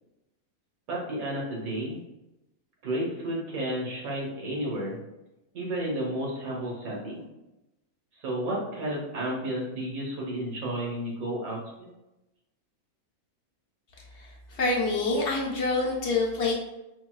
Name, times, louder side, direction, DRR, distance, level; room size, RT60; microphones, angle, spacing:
voice 1, 0.9-2.0 2.8-5.0 5.5-7.2 8.2-11.9, right 1 dB, 80° right, -3 dB, 1.5 m, -32 dB
voice 2, 14.1-16.5, left 3 dB, 60° left, -3 dB, 1.0 m, -27 dB
4.5 x 2.2 x 2.3 m, 0.95 s
omnidirectional pair, 1.5 m